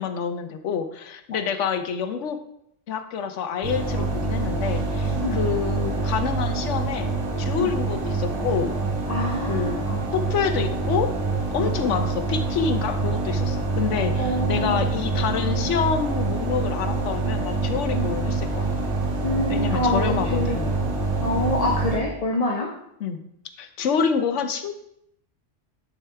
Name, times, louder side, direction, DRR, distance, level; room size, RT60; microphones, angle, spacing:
voice 1, 0.0-2.4 2.9-7.1 7.4-8.7 9.5-9.8 10.1-11.1 11.5-18.7 19.5-20.7 23.0-23.2 23.6-24.7, left 6 dB, 85° left, 8 dB, 1.1 m, -27 dB
sound 1, 3.6-22.0, right 3 dB, 75° right, 2.5 m, -26 dB
voice 2, 9.1-10.0 11.6-11.7 14.2-14.8 17.9-18.1 19.2-20.8 21.2-22.7, left 2 dB, 35° left, -1 dB, 1.0 m, -26 dB
10.5 x 4.9 x 3.3 m, 0.74 s
omnidirectional pair, 1.2 m